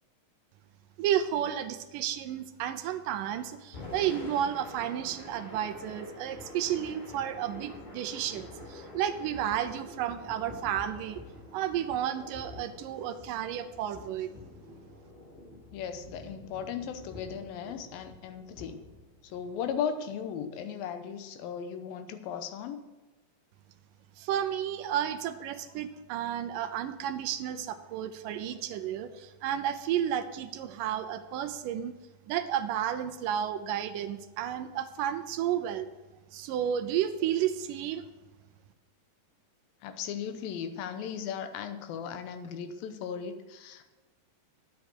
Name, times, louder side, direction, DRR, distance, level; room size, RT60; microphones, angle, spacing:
voice 1, 1.0-11.2 11.5-14.3 24.2-32.0 32.3-35.9 36.3-38.0, right 10 dB, 80° right, 10 dB, 2.1 m, -32 dB
Thunder / Rain, 3.6-19.8, left 2 dB, 55° left, 5.1 m, -47 dB
voice 2, 15.7-18.8 19.2-22.8 39.8-43.9, left 7 dB, 85° left, 9 dB, 2.7 m, -37 dB
10.5 x 8.1 x 6.4 m, 1.2 s
omnidirectional pair, 4.1 m